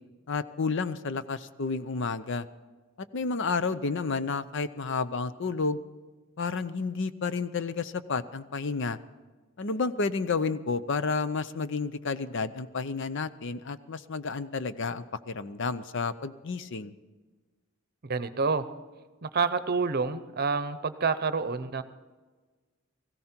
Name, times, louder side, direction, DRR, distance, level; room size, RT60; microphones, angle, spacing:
voice 1, 0.3-2.5 3.1-5.8 6.4-9.0 9.6-16.9, left 4 dB, 60° left, 13 dB, 0.6 m, -31 dB
voice 2, 18.1-18.6 19.2-21.8, right 4 dB, 50° right, 12 dB, 0.8 m, -28 dB
17.5 x 16.0 x 4.5 m, 1.3 s
head